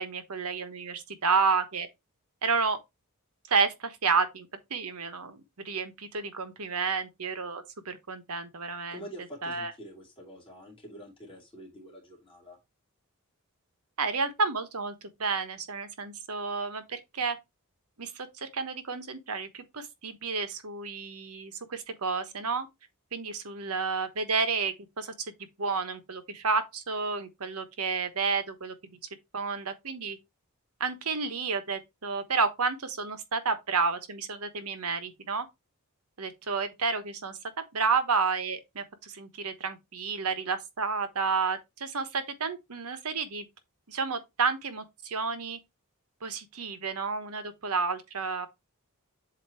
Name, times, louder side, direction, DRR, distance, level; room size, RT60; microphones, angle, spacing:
voice 1, 0.0-1.9 2.4-2.8 3.5-9.0 9.4-9.7 14.0-17.4 18.0-22.7 23.1-25.1 25.6-28.7 29.3-30.2 30.8-35.5 36.2-37.4 37.7-43.5 43.9-45.6 46.2-48.5, right 5 dB, 80° right, 1.2 m, -31 dB
voice 2, 8.9-12.6, right 1 dB, 25° left, 2.5 m, -46 dB
7.7 x 2.9 x 4.4 m
head